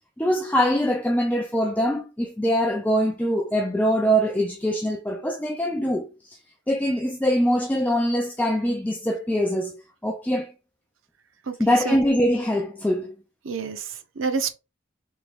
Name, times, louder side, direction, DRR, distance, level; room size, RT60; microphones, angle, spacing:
voice 1, 0.2-6.4 6.7-9.8 10.0-10.5 11.6-13.1, equal, 10° left, 0.4 m, -23 dB
voice 2, 11.5-12.0 13.4-14.5, right 5 dB, 90° right, 0.6 m, -29 dB
3.6 x 3.0 x 3.4 m
head